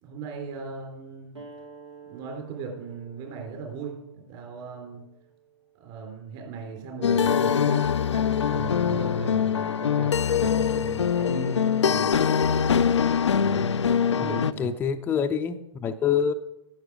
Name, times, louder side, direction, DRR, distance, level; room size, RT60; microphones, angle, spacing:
voice 1, 0.0-1.4 2.1-5.1 5.8-12.1 13.3-14.7, right 6 dB, 40° right, 1 dB, 3.7 m, -38 dB
sound 1, 1.3-6.5, right 5 dB, 85° right, 1.8 m, -50 dB
sound 2, 7.0-14.5, left 7 dB, 80° left, 0.4 m, -23 dB
voice 2, 14.2-16.3, left 7 dB, 15° left, 6 dB, 0.5 m, -26 dB
11.5 x 8.0 x 4.8 m, 0.88 s
figure-of-eight pair, 115°, 15 cm